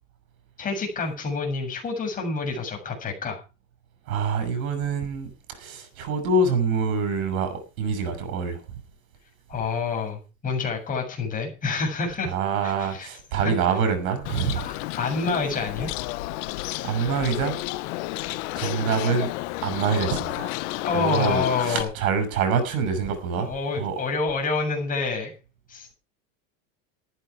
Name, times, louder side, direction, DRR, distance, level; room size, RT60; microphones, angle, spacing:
voice 1, 0.6-3.4 9.5-12.3 12.6-13.1 14.5-15.9 20.8-21.9 23.4-25.3 25.7-25.9, left 4 dB, 20° left, 7.6 m, -28 dB
voice 2, 4.1-8.6 12.2-14.6 16.8-17.6 18.5-19.3 19.6-20.5 20.9-23.5 23.8-24.0, right 5 dB, 90° right, 6.5 m, -25 dB
Bird, 14.2-21.8, left 19 dB, 60° left, 1.2 m, -31 dB
14.5 x 13.0 x 4.8 m
supercardioid pair, 160°, 41 cm